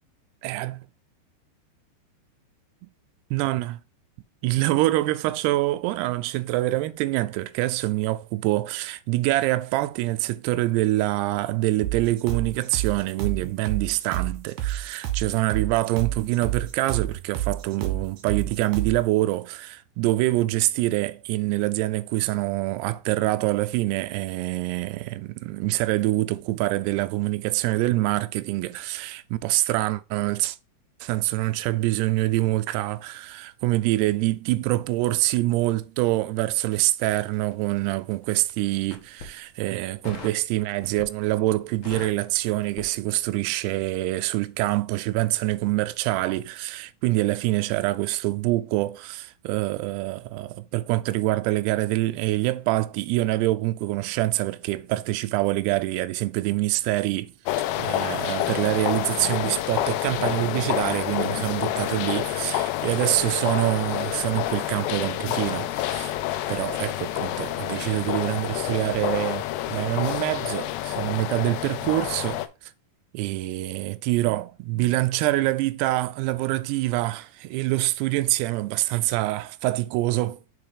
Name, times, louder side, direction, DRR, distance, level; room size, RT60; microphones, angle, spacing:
voice 1, 0.4-0.8 2.8-2.9 3.3-3.8 4.4-30.6 31.0-57.3 57.8-66.2 66.5-72.4 73.1-80.4, right 17 dB, 85° right, 2.5 m, -25 dB
sound 1, 11.8-19.0, right 13 dB, 65° right, 1.9 m, -29 dB
Crackle, 37.1-38.2 38.8-39.4 40.0-40.4 40.8-41.3 41.6-43.5 43.8-44.0, left 4 dB, 55° left, 2.0 m, -41 dB
sound 2, 57.5-72.5, left 14 dB, 85° left, 2.7 m, -28 dB
5.8 x 4.5 x 4.8 m
omnidirectional pair, 5.0 m